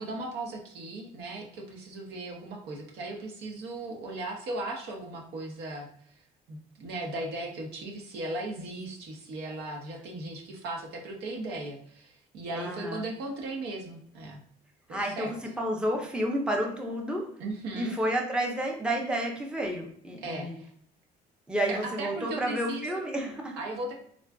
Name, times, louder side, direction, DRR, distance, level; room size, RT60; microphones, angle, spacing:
voice 1, 0.0-6.2 6.5-14.4 14.9-15.4 17.4-17.9 20.2-20.7 21.7-22.9 23.6-23.9, right 2 dB, 75° right, 1 dB, 0.8 m, -37 dB
voice 2, 12.5-13.1 14.9-17.3 17.7-20.6 21.5-23.6, right 1 dB, 5° right, 1 dB, 0.6 m, -30 dB
3.7 x 2.3 x 2.3 m, 0.64 s
cardioid pair, 110°, 17 cm